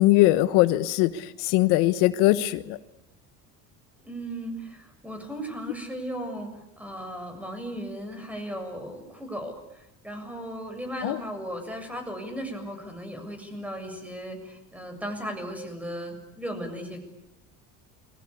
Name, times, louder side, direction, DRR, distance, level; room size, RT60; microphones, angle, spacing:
voice 1, 0.0-2.8 11.0-11.2, left 17 dB, 80° left, 13 dB, 1.2 m, -21 dB
voice 2, 4.0-6.5 6.8-17.0, equal, 5° right, 6 dB, 7.2 m, -36 dB
28.5 x 23.0 x 8.6 m, 0.85 s
cardioid pair, 120°, 36 cm